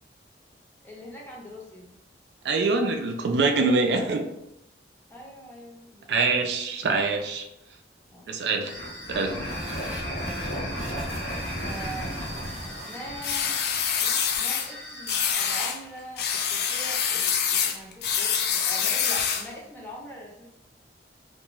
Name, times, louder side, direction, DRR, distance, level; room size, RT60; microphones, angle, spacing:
voice 1, 0.8-1.9 5.1-6.5 8.1-8.3 11.6-12.4 12.8-13.6 14.0-20.5, equal, 10° left, -3 dB, 0.6 m, -42 dB
voice 2, 2.4-4.3 6.1-7.5 8.3-8.7 9.1-9.4, right 3 dB, 65° right, 4 dB, 0.3 m, -24 dB
sound 1, 8.6-15.3, equal, 75° left, 1.0 m, -34 dB
sound 2, 9.4-14.4, right 2 dB, 40° right, 0.7 m, -45 dB
sound 3, 13.2-14.7 15.1-15.8 16.2-19.5, left 7 dB, 60° left, 0.3 m, -26 dB
2.5 x 2.3 x 3.0 m, 0.85 s
head